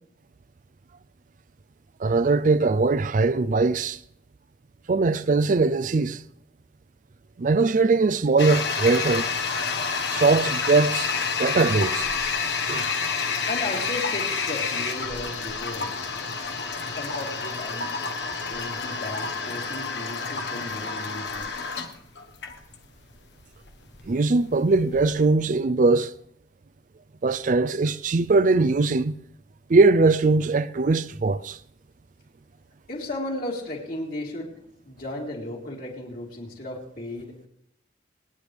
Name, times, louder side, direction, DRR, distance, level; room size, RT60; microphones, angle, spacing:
voice 1, 2.0-4.0 4.9-6.2 7.4-9.3 10.1-11.1 11.4-12.1 12.7-12.9 24.1-26.1 27.2-29.2 29.7-31.6, right 3 dB, 45° right, 0.4 m, -21 dB
Toilet flush, 8.4-25.1, left 5 dB, 80° left, 1.3 m, -29 dB
voice 2, 13.5-16.1 16.8-17.9 18.5-21.4 32.9-34.5 34.8-37.3, left 1 dB, 55° left, 3.8 m, -35 dB
26.5 x 9.9 x 3.4 m
head